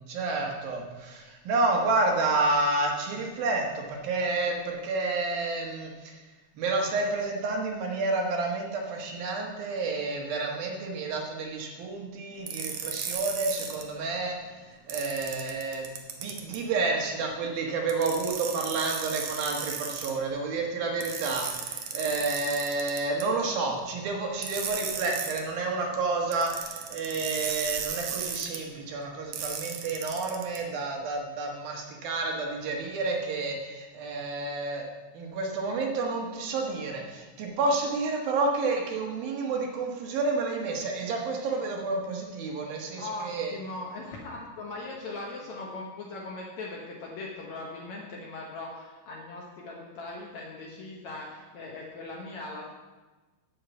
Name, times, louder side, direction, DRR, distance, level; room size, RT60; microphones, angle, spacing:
voice 1, 0.1-6.2 6.6-14.5 14.9-15.9 16.2-34.9 35.1-43.5, right 3 dB, 70° right, 1 dB, 3.1 m, -30 dB
sound 1, 12.5-13.8 14.9-16.6 17.9-20.1 21.0-23.2 24.4-25.4 26.3-28.6 29.3-30.6, right 7 dB, 90° right, 1.4 m, -35 dB
voice 2, 43.0-52.7, left 2 dB, 65° left, -2 dB, 2.0 m, -39 dB
11.5 x 5.7 x 8.0 m, 1.2 s
omnidirectional pair, 4.5 m